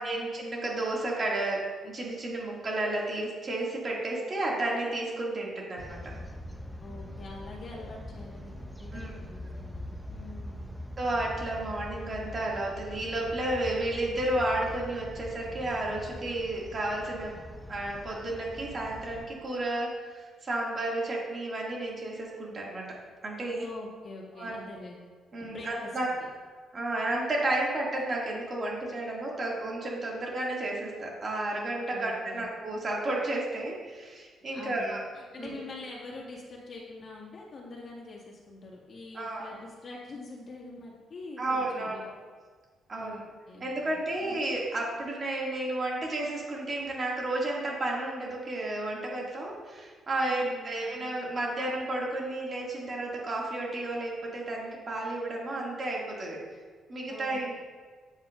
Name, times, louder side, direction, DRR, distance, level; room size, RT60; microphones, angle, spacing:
voice 1, 0.0-6.1 8.9-9.1 11.0-17.3 17.7-22.9 23.2-23.7 24.4-24.6 25.3-26.1 26.7-35.0 35.4-35.6 39.1-39.5 41.4-42.0 42.9-43.2 43.6-56.4 56.9-57.6, right 2 dB, 40° right, -3 dB, 2.3 m, -32 dB
sound 1, 5.8-19.3, left 1 dB, ahead, 0.7 m, -43 dB
voice 2, 6.8-10.8 23.6-25.1 25.4-25.9 31.9-32.4 34.5-42.2 43.0-44.3 50.3-51.0 57.1-57.6, left 3 dB, 50° left, -3 dB, 2.0 m, -45 dB
9.0 x 7.5 x 2.6 m, 1.5 s
cardioid pair, 90°, 0 cm